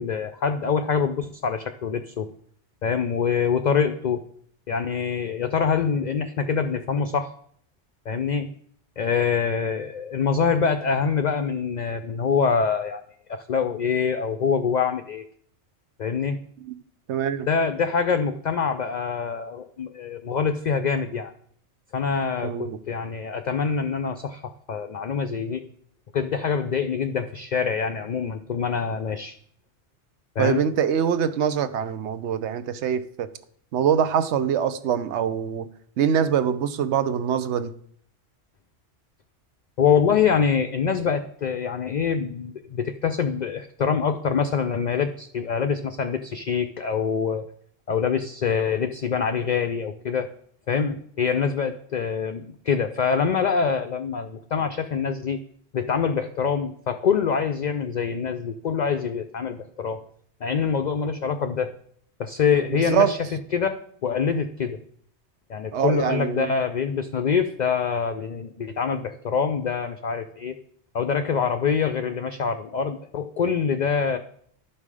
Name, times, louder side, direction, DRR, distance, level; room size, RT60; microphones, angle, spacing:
voice 1, 0.0-2.3 2.8-4.2 4.7-7.3 8.1-8.5 9.0-13.0 13.3-15.3 16.0-16.4 17.5-21.3 21.9-25.6 26.1-29.4 30.4-30.6 39.8-47.5 47.9-50.3 50.7-55.4 55.7-60.0 60.4-61.7 62.2-63.2 63.5-64.8 65.5-70.6 70.9-74.2, left 6 dB, 55° left, 0.5 m, -25 dB
voice 2, 17.1-17.5 22.4-22.8 30.4-33.3 33.7-35.7 36.0-37.7 62.7-63.1 65.7-66.5, right 8 dB, 75° right, 1.0 m, -24 dB
12.0 x 5.6 x 4.8 m
omnidirectional pair, 1.2 m